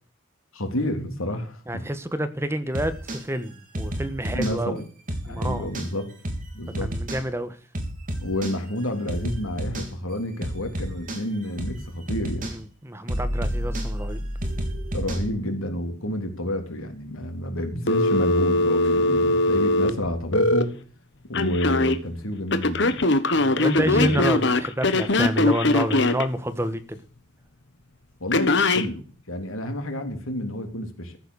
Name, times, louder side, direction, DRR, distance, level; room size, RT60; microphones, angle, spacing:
voice 1, 0.5-1.8 4.3-4.8 5.2-6.1 6.5-6.9 8.2-12.5 14.9-20.7 21.3-23.0 23.8-24.2 28.2-31.2, left 1 dB, 85° left, 3.4 m, -29 dB
voice 2, 1.7-4.8 5.3-5.7 6.8-7.6 12.5-14.2 23.4-27.0, right 1 dB, 10° right, 1.3 m, -28 dB
sound 1, 2.7-3.2 3.7-4.5 5.1-5.9 6.2-6.5 6.7-7.2 7.7-8.5 9.1-9.9 10.4-11.2 11.6-11.8 12.1-12.5 13.1-15.3, equal, 40° right, 3.5 m, -30 dB
Telephone, 17.9-20.6 21.3-22.0 22.5-26.2 28.3-28.9, left 2 dB, 55° left, 1.4 m, -21 dB
14.5 x 8.1 x 6.4 m
head